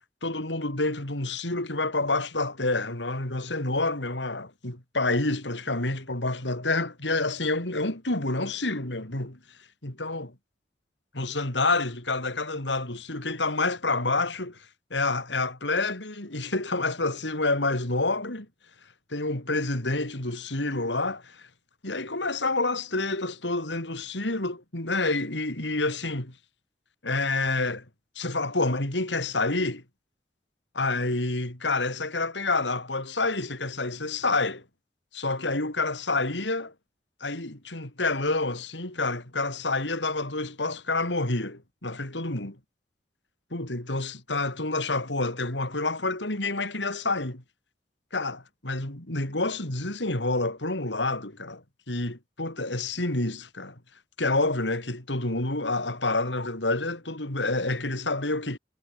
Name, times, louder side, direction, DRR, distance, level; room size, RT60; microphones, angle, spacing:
voice 1, 0.2-9.4 9.8-10.3 11.1-14.6 14.9-18.5 19.1-21.5 21.8-26.3 27.0-27.8 28.2-29.8 30.7-34.6 35.1-36.7 37.2-42.5 43.5-47.4 48.1-53.7 54.2-58.6, left 2 dB, 85° left, 4.2 m, -28 dB
head